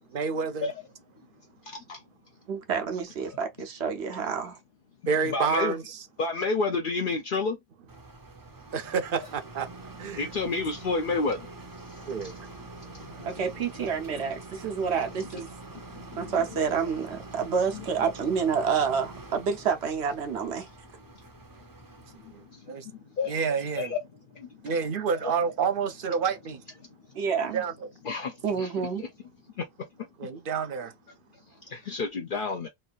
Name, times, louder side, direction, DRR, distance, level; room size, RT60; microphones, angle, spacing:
voice 1, 0.1-0.7 5.1-6.0 8.7-9.7 10.0-10.3 12.0-12.3 13.8-13.9 22.3-22.4 22.7-22.8 23.3-23.9 24.6-26.6 27.5-27.7 30.2-30.9, right 6 dB, 60° right, 0.7 m, -28 dB
voice 2, 1.7-2.0 3.3-3.4 5.2-5.7 6.2-7.6 10.1-11.5 12.2-12.3 12.8-13.4 15.7-16.7 22.2-23.3 23.8-24.0 24.3-24.7 25.2-25.3 28.0-28.7 29.0-29.1 29.6-29.7 31.7-32.7, left 4 dB, 60° left, 0.7 m, -31 dB
voice 3, 2.5-4.6 13.2-15.5 16.1-20.7 27.1-27.6 28.4-29.0, right 6 dB, 85° right, 1.1 m, -28 dB
sound 1, 7.9-22.6, right 2 dB, 25° right, 0.5 m, -45 dB
3.2 x 2.5 x 2.4 m
omnidirectional pair, 1.1 m